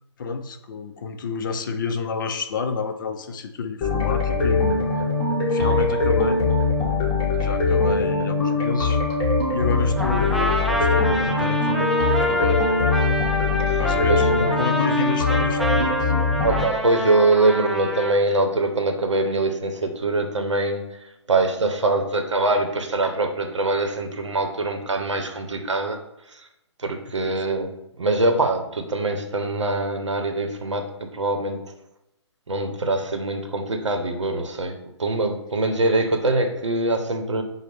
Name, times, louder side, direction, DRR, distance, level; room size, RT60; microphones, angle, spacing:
voice 1, 0.2-5.0 5.5-6.4 7.4-9.0 9.5-12.6 13.7-16.1 27.2-27.4, left 4 dB, 45° left, 7 dB, 0.4 m, -29 dB
sound 1, 3.8-16.6, left 3 dB, 20° left, 1.1 m, -22 dB
Trumpet, 10.0-18.2, equal, ahead, 0.6 m, -27 dB
voice 2, 16.4-20.8 21.3-26.0 26.3-26.5 26.8-27.7 28.0-31.6 32.5-37.4, right 2 dB, 80° right, 5 dB, 0.7 m, -23 dB
6.1 x 2.1 x 3.4 m, 0.86 s
figure-of-eight pair, 135°, 15 cm